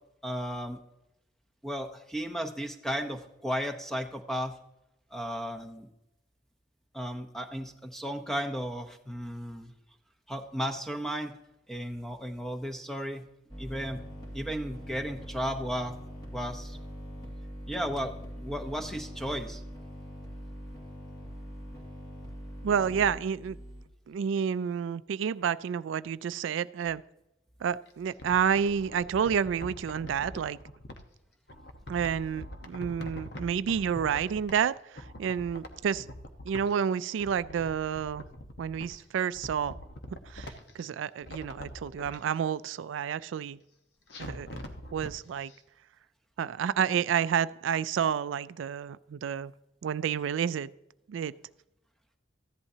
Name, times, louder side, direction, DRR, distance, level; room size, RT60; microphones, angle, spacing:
voice 1, 0.2-0.8 1.6-4.6 5.1-5.9 6.9-9.7 10.3-11.3 11.7-13.3 13.6-14.0 14.3-16.0 16.3-16.8 17.7-19.6, equal, ahead, 5 dB, 0.8 m, -34 dB
sound 1, 13.5-23.8, equal, 20° left, 2.1 m, -43 dB
voice 2, 22.6-23.6 24.1-27.0 27.6-30.6 31.9-36.1 36.4-38.2 38.6-39.8 40.3-43.6 44.2-44.5 44.9-45.5 46.4-49.5 49.8-50.7 51.1-51.3, right 7 dB, 85° right, 16 dB, 0.3 m, -30 dB
sound 2, 27.9-31.0 31.5-34.7 34.9-36.8 37.1-39.0 39.3-40.8 41.2-42.2 44.1-45.1 45.5-45.6, left 1 dB, 60° left, 1.1 m, -44 dB
14.5 x 11.0 x 2.8 m, 0.89 s
head